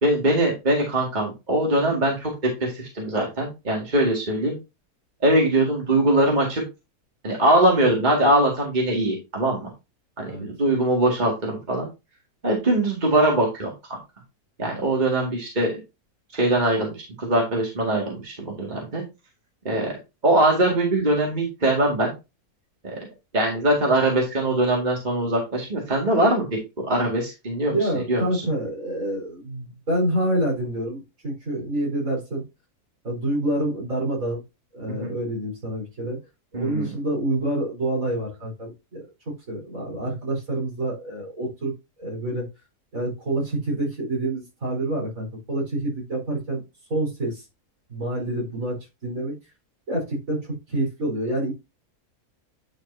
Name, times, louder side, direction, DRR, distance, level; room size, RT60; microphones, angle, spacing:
voice 1, 0.0-2.3 2.6-4.6 5.2-6.6 7.2-9.7 10.2-11.9 12.4-13.7 14.6-15.8 16.3-19.0 19.6-19.9 20.2-22.2 22.8-23.0 23.3-28.4 35.0-35.1 36.5-36.9, right 1 dB, 30° right, -2 dB, 2.2 m, -22 dB
voice 2, 27.7-32.4 33.0-34.4 34.7-36.2 36.5-41.7 42.0-42.5 42.9-46.6 46.9-47.4 47.9-49.3 49.9-51.5, right 1 dB, 60° right, -2 dB, 4.9 m, -27 dB
10.0 x 5.1 x 2.7 m, 0.25 s
omnidirectional pair, 1.6 m